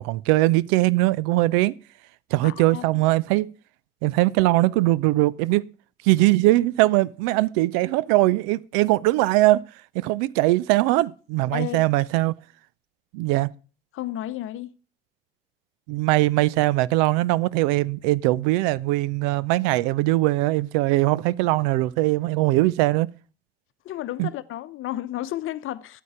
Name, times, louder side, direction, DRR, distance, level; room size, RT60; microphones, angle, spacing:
voice 1, 0.0-1.7 2.3-3.5 4.0-5.6 6.0-9.6 9.9-12.3 13.1-13.5 15.9-23.1 24.2-24.3, right 18 dB, 55° right, 0.6 m, -21 dB
voice 2, 2.4-2.8 11.5-11.8 13.9-14.8 23.8-26.0, left 13 dB, 45° left, 1.0 m, -32 dB
13.5 x 9.3 x 4.9 m
figure-of-eight pair, 60°, 30 cm